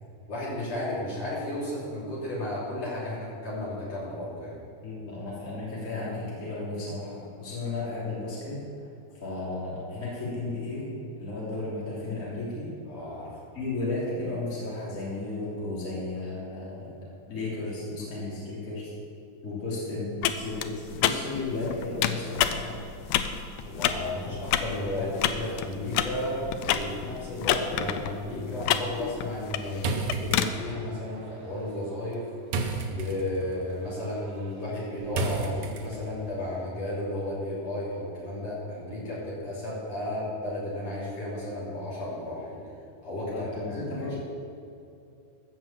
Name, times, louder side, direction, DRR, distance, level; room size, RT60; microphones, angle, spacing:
voice 1, 0.3-4.6 12.9-13.4 23.6-32.2 32.9-42.6 43.0-44.2, left 1 dB, 50° left, -8 dB, 4.1 m, -33 dB
voice 2, 4.8-8.6 9.2-10.9 11.2-12.7 13.5-16.9 17.3-18.9 19.4-22.8 43.1-44.1, left 2 dB, 25° left, -8 dB, 3.4 m, -34 dB
sound 1, 20.2-30.5, left 10 dB, 80° left, 2.0 m, -30 dB
sound 2, 29.8-36.3, right 3 dB, 70° right, 1.4 m, -34 dB
14.0 x 6.0 x 7.5 m, 2.5 s
omnidirectional pair, 3.8 m